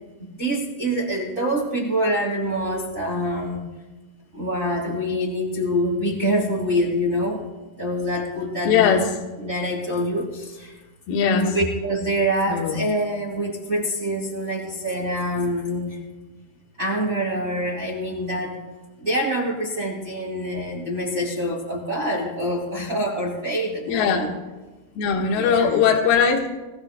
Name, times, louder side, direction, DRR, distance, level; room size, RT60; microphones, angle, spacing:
voice 1, 0.2-3.6 4.3-7.4 7.8-9.0 9.4-10.8 11.2-16.0 16.8-18.6 19.0-24.3 25.1-25.8, equal, 35° right, -4 dB, 1.3 m, -25 dB
voice 2, 8.6-9.1 11.1-11.5 12.5-12.8 23.9-24.4 25.0-26.5, left 7 dB, 65° left, 1 dB, 2.9 m, -20 dB
22.0 x 16.0 x 2.2 m, 1.2 s
omnidirectional pair, 5.2 m